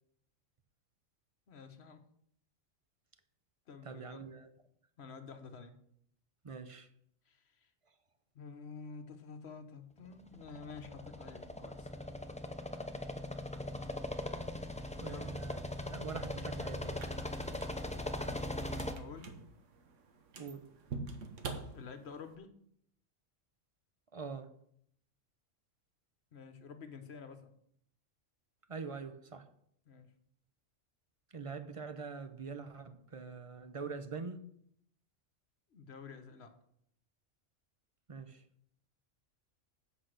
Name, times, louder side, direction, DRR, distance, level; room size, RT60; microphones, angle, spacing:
voice 1, 1.5-2.1 3.7-4.3 5.0-5.8 7.3-7.7 8.3-11.9 15.0-15.4 18.2-18.5 18.9-19.3 21.7-22.6 26.3-27.5 29.8-30.1 35.7-36.5, left 5 dB, 55° left, 1.2 m, -50 dB
voice 2, 3.8-4.5 6.4-6.9 15.0-15.6 15.9-17.1 20.3-20.7 24.1-24.6 28.7-29.5 31.3-34.4 38.1-38.4, right 5 dB, 35° right, 0.5 m, -44 dB
sound 1, 10.3-18.9, left 1 dB, 10° left, 0.3 m, -40 dB
sound 2, 16.8-22.4, right 4 dB, 70° right, 1.3 m, -47 dB
8.0 x 5.8 x 6.4 m
omnidirectional pair, 1.3 m